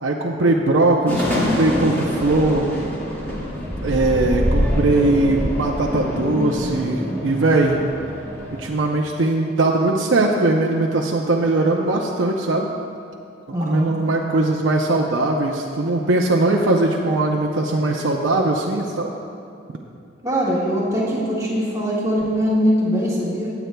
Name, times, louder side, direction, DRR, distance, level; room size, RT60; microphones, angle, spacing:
voice 1, 0.0-2.7 3.8-7.8 8.5-12.7 13.6-19.1, right 2 dB, 85° right, 0 dB, 0.6 m, -20 dB
sound 1, 1.1-8.7, left 1 dB, 10° left, 1.8 m, -25 dB
voice 2, 13.5-14.0 20.2-23.5, equal, 20° right, -6 dB, 1.7 m, -21 dB
19.5 x 8.0 x 2.2 m, 2.6 s
head